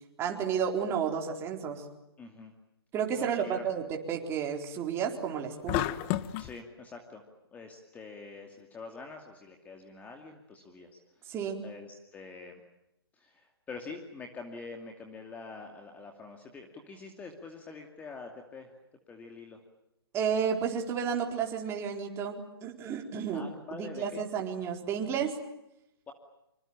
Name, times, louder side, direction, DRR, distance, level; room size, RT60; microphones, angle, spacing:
voice 1, 0.2-1.8 2.9-5.9 11.3-11.6 20.1-23.4 23.7-25.3, right 7 dB, 20° right, 2 dB, 4.3 m, -32 dB
voice 2, 2.2-2.5 3.2-3.6 6.4-7.2 7.5-10.9 11.2-11.3 11.6-12.6 13.1-18.7 19.1-19.6 23.3-24.2 26.1-26.2, left 4 dB, 10° left, 3 dB, 2.6 m, -45 dB
sound 1, 5.7-6.5, left 14 dB, 30° left, 1.2 m, -30 dB
26.0 x 25.0 x 8.9 m, 0.87 s
hypercardioid pair, 145°, 13 cm